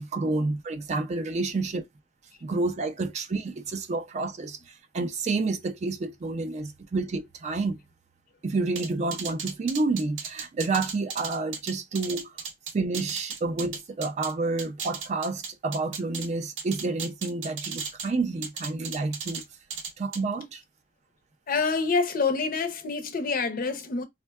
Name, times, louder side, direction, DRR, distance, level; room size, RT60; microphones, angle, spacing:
voice 1, 0.0-1.8 2.4-4.6 4.9-7.8 8.4-12.3 12.7-19.4 20.0-20.6, right 3 dB, 40° right, 0.3 m, -29 dB
sound 1, 8.8-14.3 14.6-16.3 16.6-18.1 18.4-19.4 19.7-20.2, right 6 dB, 90° right, 0.6 m, -36 dB
voice 2, 21.5-24.0, left 4 dB, 50° left, 0.5 m, -27 dB
3.4 x 2.2 x 2.2 m
head